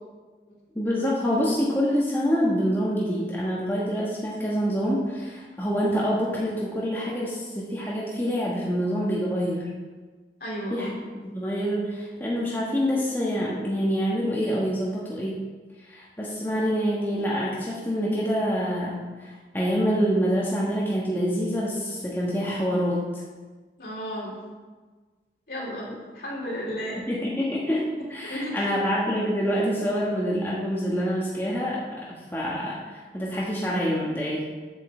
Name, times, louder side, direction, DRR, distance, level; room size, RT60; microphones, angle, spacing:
voice 1, 0.7-9.7 10.7-10.9 11.2-15.3 15.9-23.2 27.0-34.5, equal, 10° left, -6 dB, 1.2 m, -26 dB
voice 2, 10.4-10.9 23.8-24.4 25.5-27.0 28.3-28.7, equal, 60° left, -4 dB, 3.0 m, -33 dB
7.9 x 5.4 x 7.5 m, 1.4 s
head